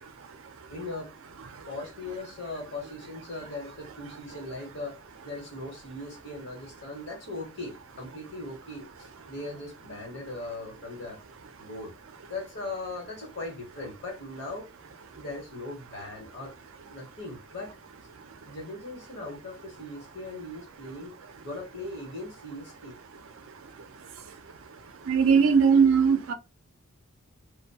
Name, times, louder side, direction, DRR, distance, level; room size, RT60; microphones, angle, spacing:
voice 1, 0.7-1.1 1.7-5.0 5.2-11.2 11.6-11.9 12.2-14.7 15.1-16.5 16.9-17.8 18.4-21.1 21.4-23.0, left 2 dB, 50° left, 1.0 m, -39 dB
voice 2, 25.1-26.3, right 6 dB, 70° right, 0.4 m, -19 dB
2.6 x 2.1 x 2.7 m
head